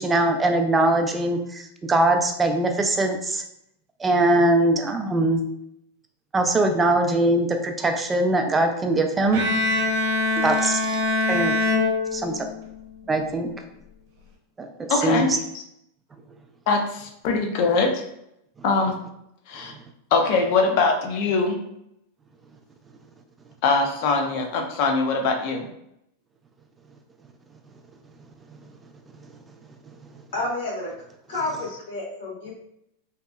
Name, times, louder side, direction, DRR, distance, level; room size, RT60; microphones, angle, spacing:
voice 1, 0.0-3.4 4.0-5.5 6.3-9.4 10.4-10.8 11.3-11.5 12.1-12.5 13.1-13.5 14.6-15.3, right 2 dB, 15° right, 5 dB, 0.3 m, -22 dB
Bowed string instrument, 9.3-12.7, left 2 dB, 65° right, 0.7 m, -23 dB
voice 2, 14.9-15.3 16.7-18.0 18.6-18.9 19.5-19.7 20.1-21.6 23.6-25.7, left 4 dB, 55° left, 3 dB, 0.5 m, -22 dB
voice 3, 30.3-30.9 31.3-32.5, left 2 dB, 80° left, -4 dB, 1.3 m, -30 dB
2.7 x 2.2 x 2.2 m, 0.77 s
supercardioid pair, 130°, 0 cm